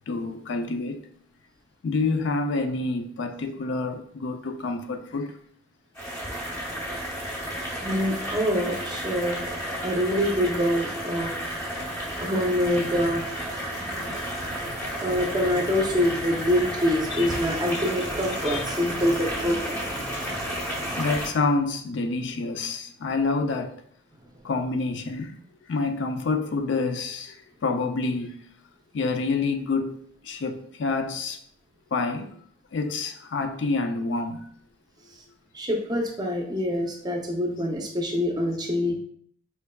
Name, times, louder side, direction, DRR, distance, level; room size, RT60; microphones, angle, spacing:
voice 1, 0.1-1.1 1.8-5.3 13.7-15.2 17.1-17.3 17.7-17.9 18.5-18.6 20.9-23.7 24.4-25.4 25.7-28.4 28.9-31.4 31.9-32.4 32.7-34.5, left 3 dB, 65° left, 0.4 m, -28 dB
sound 1, 5.9-21.3, equal, 15° left, 0.8 m, -32 dB
voice 2, 7.8-9.4 9.8-11.3 12.2-14.2 14.8-21.0 35.5-38.9, equal, 20° right, 0.6 m, -26 dB
4.4 x 3.3 x 2.2 m
head